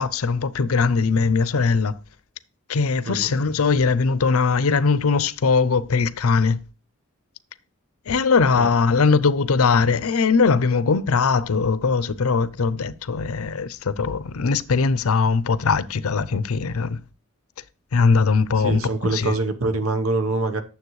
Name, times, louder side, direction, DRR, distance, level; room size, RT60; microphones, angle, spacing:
voice 1, 0.0-1.9 2.7-6.6 8.1-17.0 17.9-19.4, left 4 dB, 80° left, 0.6 m, -20 dB
voice 2, 18.6-20.6, right 2 dB, 75° right, 1.1 m, -24 dB
9.4 x 7.0 x 3.1 m
head